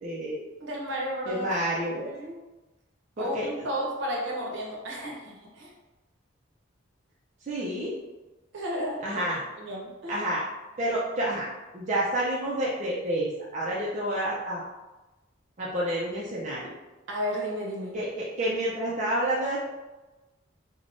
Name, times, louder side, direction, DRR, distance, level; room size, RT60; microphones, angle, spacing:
voice 1, 0.0-0.4 1.3-2.1 3.2-3.7 7.4-7.9 9.0-9.4 10.1-10.4 10.8-14.6 15.6-16.7 17.9-19.6, right 1 dB, 35° right, -6 dB, 0.4 m, -29 dB
voice 2, 0.6-1.5 2.0-2.4 3.2-5.7 8.5-9.2 9.6-10.3 17.1-18.0, equal, 65° right, -2 dB, 0.7 m, -33 dB
3.3 x 2.1 x 2.5 m, 1.1 s
head